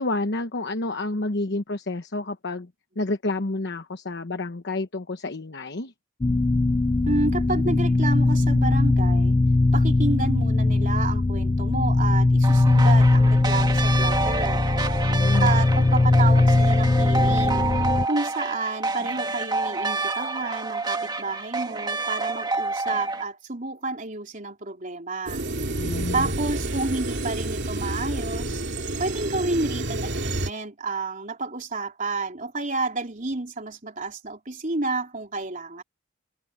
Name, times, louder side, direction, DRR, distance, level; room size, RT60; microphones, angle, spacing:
voice 1, 0.0-2.7 3.0-5.9 15.0-15.5 25.8-26.3, left 2 dB, 55° left, 1.1 m, -29 dB
sound 1, 6.2-18.1, left 2 dB, 20° left, 0.3 m, -20 dB
voice 2, 7.1-9.4 9.7-14.6 15.4-17.7 18.0-25.5 26.1-28.6 29.0-35.8, right 3 dB, 40° right, 3.5 m, -30 dB
sound 2, 12.4-23.2, right 3 dB, 20° right, 2.2 m, -28 dB
sound 3, 25.3-30.5, right 2 dB, 55° right, 2.9 m, -29 dB
head